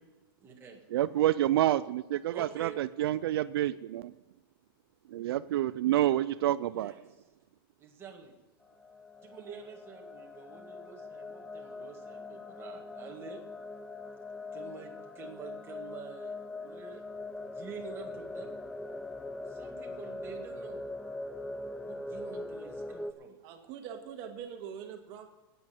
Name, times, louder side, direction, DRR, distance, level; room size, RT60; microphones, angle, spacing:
voice 1, 0.4-0.8 2.3-2.8 6.7-7.0 7.8-8.4 9.2-13.4 14.5-17.0 17.4-18.5 19.5-20.8 21.8-23.4, right 6 dB, 20° right, 1 dB, 2.0 m, -48 dB
voice 2, 0.9-4.1 5.1-6.9, right 13 dB, 85° right, 14 dB, 0.4 m, -28 dB
sound 1, 8.6-23.1, left 2 dB, 5° left, 0.4 m, -42 dB
voice 3, 23.4-25.3, right 8 dB, 40° right, 5 dB, 1.8 m, -43 dB
10.5 x 8.6 x 8.8 m, 1.1 s
supercardioid pair, 160°, 12 cm